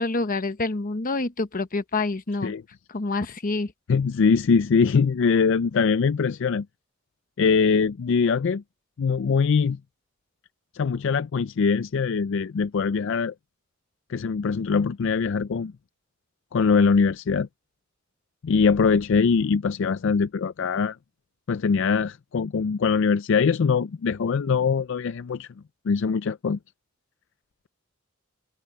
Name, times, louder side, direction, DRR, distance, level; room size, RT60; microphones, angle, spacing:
voice 1, 0.0-2.5 2.9-3.7, left 3 dB, 40° left, 1.0 m, -27 dB
voice 2, 3.9-6.7 7.4-8.6 9.0-9.8 10.7-13.3 14.1-15.7 16.5-17.5 18.4-21.0 21.5-25.5 25.9-26.6, left 5 dB, 65° left, 0.4 m, -22 dB
head